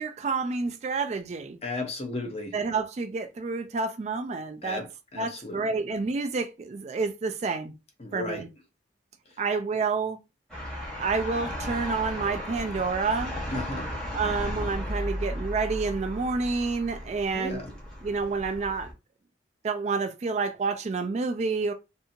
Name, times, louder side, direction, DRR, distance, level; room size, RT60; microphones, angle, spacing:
voice 1, 0.0-1.6 2.5-4.8 5.2-7.7 8.1-8.5 9.4-10.2 11.0-13.4 14.1-17.6 18.0-18.9 19.6-21.7, right 4 dB, 40° right, 0.3 m, -29 dB
voice 2, 1.6-2.5 4.6-5.7 8.0-8.4 13.5-13.9 17.3-17.7, left 2 dB, 35° left, 0.6 m, -35 dB
sound 1, 10.5-18.9, equal, 5° left, 1.0 m, -35 dB
2.7 x 2.6 x 2.5 m
head